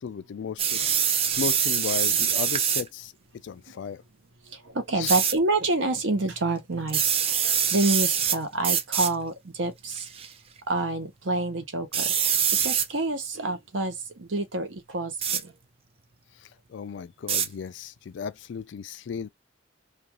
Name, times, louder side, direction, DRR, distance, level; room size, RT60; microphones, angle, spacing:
voice 1, 0.0-3.1 3.4-4.0 5.0-5.2 16.4-19.3, left 6 dB, 65° left, 0.3 m, -35 dB
sound 1, 0.6-2.9 5.1-5.3 6.9-8.4 8.6-9.1 9.9-10.3 11.9-12.9 15.2-15.4 17.3-17.5, right 8 dB, 30° right, 0.3 m, -24 dB
voice 2, 4.5-10.1 10.7-12.3 12.6-15.5, right 2 dB, 75° right, 0.9 m, -28 dB
2.4 x 2.3 x 2.9 m
head